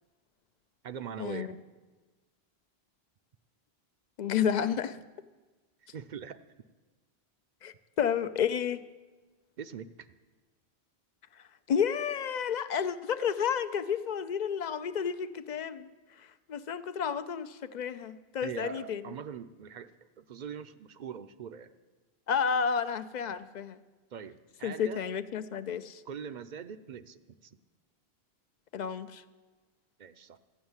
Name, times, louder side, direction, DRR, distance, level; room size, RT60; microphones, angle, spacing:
voice 1, 0.8-1.5 5.9-6.4 9.6-9.9 18.4-21.7 24.1-25.1 26.1-27.6 30.0-30.4, right 7 dB, 55° right, 11 dB, 0.6 m, -42 dB
voice 2, 4.2-5.0 7.6-8.8 11.7-15.9 16.5-19.1 22.3-23.8 24.6-26.0 28.7-29.2, left 7 dB, 55° left, 12 dB, 0.5 m, -31 dB
14.0 x 6.3 x 9.6 m, 1.3 s
omnidirectional pair, 1.1 m